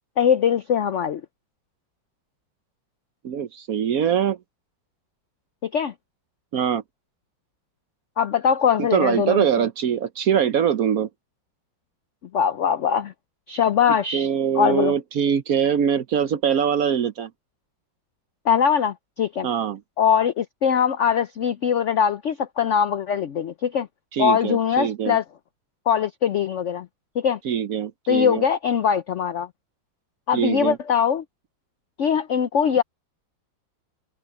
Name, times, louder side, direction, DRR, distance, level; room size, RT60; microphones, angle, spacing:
voice 1, 0.2-1.2 5.6-5.9 8.2-9.7 12.3-13.1 13.5-14.3 14.5-14.9 18.4-19.5 20.0-23.9 24.2-25.2 25.9-26.9 27.1-27.4 28.1-29.5 30.3-31.2 32.0-32.8, left 7 dB, 80° left, 0.6 m, -21 dB
voice 2, 3.2-4.4 6.5-6.8 8.8-11.1 14.1-17.3 19.4-19.8 24.1-25.2 27.4-28.4 30.3-30.8, right 8 dB, 60° right, 1.0 m, -23 dB
omnidirectional pair, 2.1 m